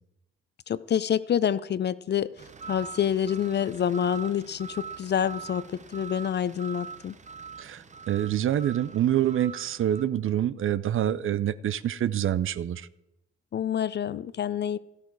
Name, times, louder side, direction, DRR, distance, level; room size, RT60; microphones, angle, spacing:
voice 1, 0.7-2.4 2.7-7.1 13.5-14.8, left 9 dB, 35° left, 18 dB, 0.4 m, -27 dB
sound 1, 2.4-10.0, right 6 dB, 25° right, 0.8 m, -43 dB
voice 2, 7.6-12.9, right 11 dB, 40° right, 18 dB, 0.5 m, -26 dB
13.5 x 8.3 x 4.6 m, 0.90 s
hypercardioid pair, 55°, 31 cm